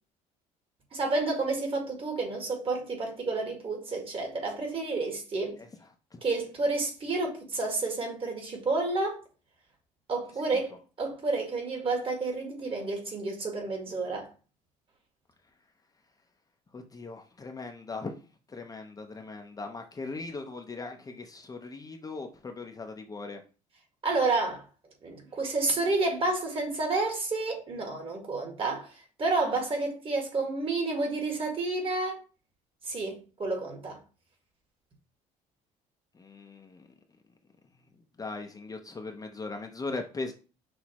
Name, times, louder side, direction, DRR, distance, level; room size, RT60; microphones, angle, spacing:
voice 1, 0.9-5.6 6.2-9.2 10.1-14.3 24.0-24.6 25.0-28.9 29.2-32.2 32.8-34.0, right 3 dB, 35° right, 1.8 m, -30 dB
voice 2, 16.7-18.1 18.5-23.4 36.1-36.9 37.9-40.3, left 3 dB, 25° left, 0.7 m, -39 dB
6.1 x 2.6 x 3.0 m
cardioid pair, 95°, 15 cm